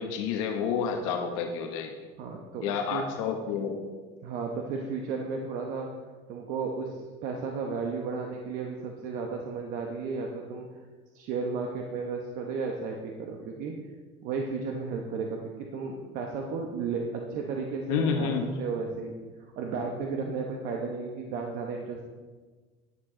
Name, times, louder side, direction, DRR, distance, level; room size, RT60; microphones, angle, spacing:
voice 1, 0.0-1.9 2.6-3.8 17.9-18.5, left 6 dB, 90° left, 3 dB, 1.0 m, -29 dB
voice 2, 2.2-3.1 4.2-5.9 6.3-10.7 11.1-13.8 14.2-15.4 15.7-18.3 18.6-19.1 19.4-22.1, right 4 dB, 60° right, 1 dB, 1.1 m, -34 dB
10.5 x 8.3 x 3.8 m, 1.4 s
cardioid pair, 130°, 16 cm